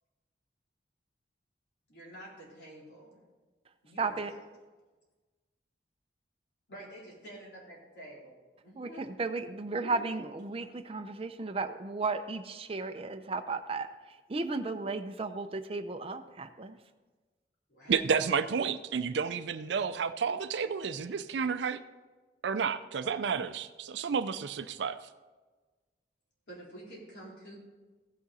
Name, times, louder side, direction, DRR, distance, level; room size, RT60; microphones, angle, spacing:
voice 1, 1.9-3.2 3.8-4.2 6.7-8.3 8.6-9.1 9.8-10.0 17.7-18.0 26.5-27.6, right 1 dB, 70° left, -5 dB, 3.9 m, -48 dB
voice 2, 4.0-4.3 8.7-16.8, right 3 dB, 30° right, 7 dB, 0.6 m, -35 dB
voice 3, 17.9-21.8 22.4-25.0, right 6 dB, 80° right, 12 dB, 0.4 m, -31 dB
15.5 x 6.3 x 4.2 m, 1.3 s
head